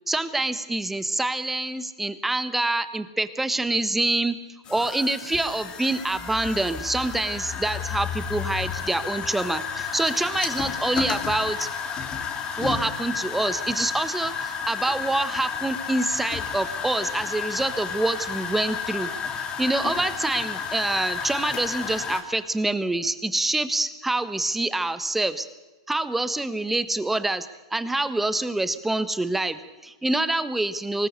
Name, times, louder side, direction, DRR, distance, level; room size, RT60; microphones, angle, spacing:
voice 1, 0.1-4.4 4.7-11.7 12.6-19.1 19.6-25.5 25.9-31.1, right 2 dB, 5° right, 12 dB, 1.3 m, -26 dB
sound 1, 4.7-22.2, left 6 dB, 25° left, 3.3 m, -32 dB
24.0 x 19.5 x 6.9 m, 1.1 s
hypercardioid pair, 120°, 3 cm